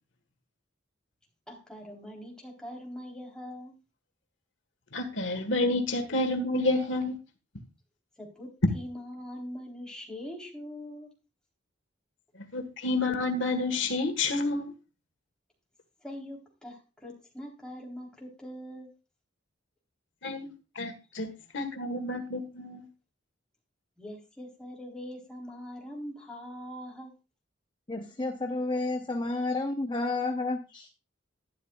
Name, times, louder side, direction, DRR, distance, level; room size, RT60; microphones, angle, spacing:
voice 1, 1.5-3.8 8.2-11.1 16.0-18.9 24.0-27.1, equal, 5° left, 3.7 m, -42 dB
voice 2, 4.9-7.1 12.5-14.7 20.2-20.5 20.7-22.8, left 2 dB, 70° left, 1.6 m, -29 dB
voice 3, 27.9-30.9, left 2 dB, 25° left, 0.9 m, -31 dB
12.0 x 11.5 x 2.4 m
head